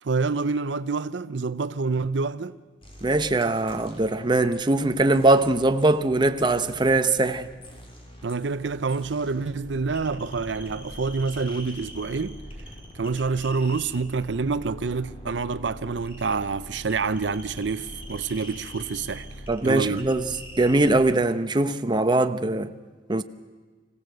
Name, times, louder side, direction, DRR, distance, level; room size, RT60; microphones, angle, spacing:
voice 1, 0.0-2.6 8.2-12.4 12.9-19.3 19.6-20.1, right 4 dB, 75° right, 0.6 m, -27 dB
sound 1, 2.8-21.0, equal, 30° left, 3.3 m, -43 dB
voice 2, 3.0-7.5 19.5-20.3 20.6-22.7 23.1-23.2, right 2 dB, 25° right, 0.8 m, -21 dB
25.5 x 16.5 x 7.9 m
head